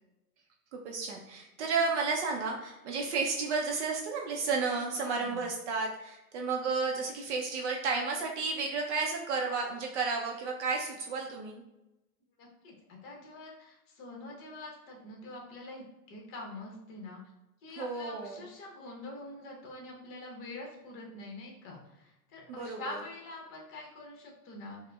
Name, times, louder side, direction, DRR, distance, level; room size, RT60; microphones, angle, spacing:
voice 1, 0.7-11.6 17.8-18.4 22.5-23.0, right 4 dB, 50° right, 1 dB, 0.5 m, -32 dB
voice 2, 5.0-5.4 12.4-17.2 17.6-24.8, left 2 dB, 30° left, -1 dB, 0.8 m, -45 dB
4.6 x 2.1 x 2.2 m, 0.95 s
hypercardioid pair, 115°, 47 cm